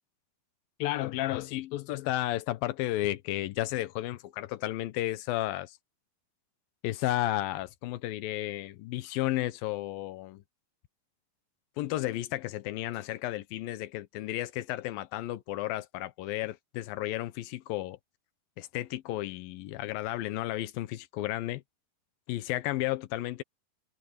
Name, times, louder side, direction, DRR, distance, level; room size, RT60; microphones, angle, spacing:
voice 1, 0.8-5.8 6.8-10.4 11.8-18.0 18.6-21.6 22.3-23.4, left 15 dB, 85° left, 2.7 m, -33 dB
omnidirectional pair, 4.0 m